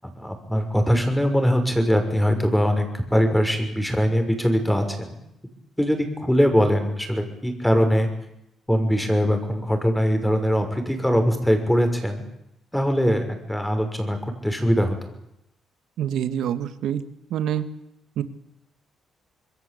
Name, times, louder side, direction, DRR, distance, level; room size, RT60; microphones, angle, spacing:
voice 1, 0.0-5.2 5.8-8.1 8.7-12.2 12.7-14.2 14.4-15.0, equal, 5° left, 6 dB, 6.2 m, -22 dB
voice 2, 16.0-17.0 17.3-17.6 18.2-18.3, right 10 dB, 80° right, 11 dB, 2.0 m, -26 dB
26.5 x 22.0 x 8.7 m, 0.84 s
cardioid pair, 90°, 0 cm